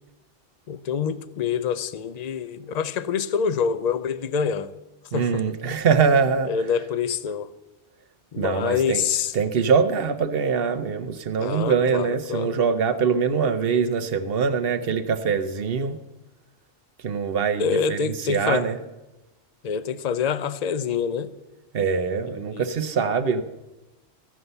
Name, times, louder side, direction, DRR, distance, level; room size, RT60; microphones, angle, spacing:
voice 1, 0.7-4.7 5.1-5.7 6.5-7.5 8.3-9.3 11.4-12.6 17.6-18.7 19.6-21.3 22.3-22.7, left 7 dB, 50° left, 0.5 m, -26 dB
voice 2, 5.1-6.5 8.4-9.0 9.3-16.0 17.0-18.8 21.7-23.4, right 6 dB, 55° right, 0.9 m, -23 dB
15.0 x 5.5 x 7.9 m
omnidirectional pair, 1.2 m